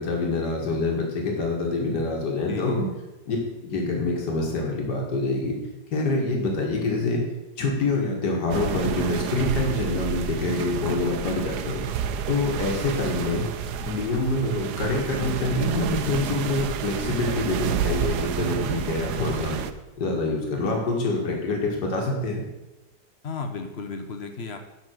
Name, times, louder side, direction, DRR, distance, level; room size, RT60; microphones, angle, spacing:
voice 1, 0.0-2.9 3.3-3.4 3.6-5.6 5.9-7.2 7.6-11.8 12.3-13.5 13.8-19.6 20.0-22.4, left 3 dB, 80° left, 0 dB, 2.3 m, -26 dB
voice 2, 2.5-2.9 23.2-24.6, left 4 dB, 50° left, 6 dB, 0.9 m, -34 dB
sound 1, 8.5-19.7, right 8 dB, 80° right, 1.2 m, -29 dB
8.0 x 5.4 x 6.2 m, 1.0 s
omnidirectional pair, 1.8 m